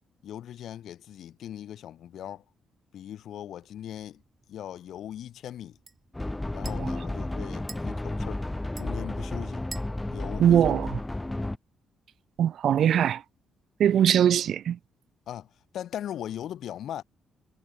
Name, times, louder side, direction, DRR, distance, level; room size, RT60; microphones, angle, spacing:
voice 1, 0.2-2.4 2.9-4.2 4.5-5.8 6.5-8.4 8.8-9.7 10.1-10.8 15.3-17.0, left 11 dB, 70° left, 6.1 m, -39 dB
sound 1, 3.6-11.4, right 3 dB, 25° right, 4.7 m, -52 dB
sound 2, 6.1-11.6, left 1 dB, 10° left, 1.6 m, -32 dB
voice 2, 10.4-11.0 12.4-13.2 13.8-14.8, right 9 dB, 65° right, 0.7 m, -21 dB
cardioid pair, 90°, 0 cm